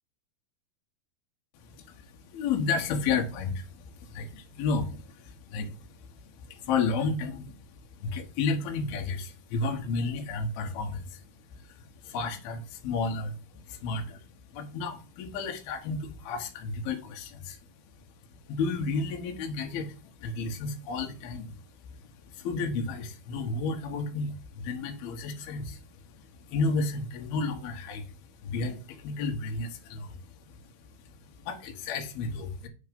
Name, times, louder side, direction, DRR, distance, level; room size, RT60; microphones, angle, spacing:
voice 1, 1.5-17.7 17.9-32.7, left 4 dB, 75° left, 3 dB, 3.1 m, -33 dB
9.8 x 3.6 x 5.1 m, 0.34 s
omnidirectional pair, 4.5 m